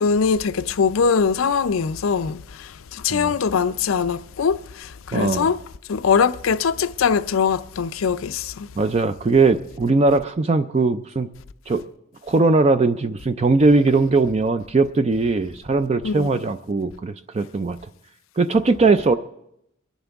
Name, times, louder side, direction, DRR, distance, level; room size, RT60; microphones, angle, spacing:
voice 1, 0.0-5.6 5.9-8.7 16.0-16.5, left 6 dB, 90° left, 0.5 m, -22 dB
voice 2, 5.1-5.5 8.8-11.3 11.7-11.8 12.2-17.8 18.4-19.1, right 3 dB, 30° right, 0.4 m, -19 dB
22.5 x 11.5 x 3.5 m
head